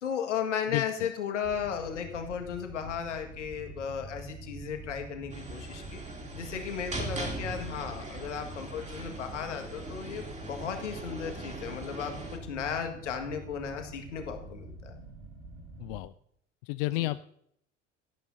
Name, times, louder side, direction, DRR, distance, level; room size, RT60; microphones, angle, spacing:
voice 1, 0.0-6.0 6.3-15.0 17.0-17.1, left 7 dB, 70° left, 5 dB, 1.9 m, -35 dB
voice 2, 0.7-1.1 15.8-16.1 16.6-17.3, left 20 dB, 50° left, 15 dB, 0.5 m, -32 dB
sound 1, 1.4-16.0, right 2 dB, 70° right, 5.5 m, -46 dB
sound 2, 5.3-12.4, right 2 dB, 20° right, 3.0 m, -40 dB
17.5 x 12.5 x 2.7 m, 0.70 s
figure-of-eight pair, 65°, 37 cm